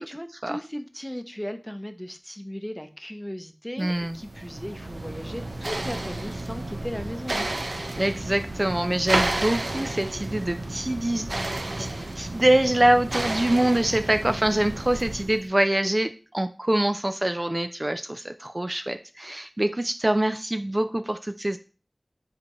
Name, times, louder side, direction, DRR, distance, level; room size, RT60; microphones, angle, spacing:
voice 1, 0.0-7.5, equal, 10° left, 8 dB, 0.7 m, -36 dB
voice 2, 3.8-4.2 8.0-11.5 11.8-11.9 12.2-21.6, right 1 dB, 35° right, 9 dB, 0.3 m, -24 dB
sound 1, 3.9-15.4, right 2 dB, 85° right, 0.7 m, -31 dB
7.5 x 4.4 x 3.0 m, 0.35 s
wide cardioid pair, 50°, 0 cm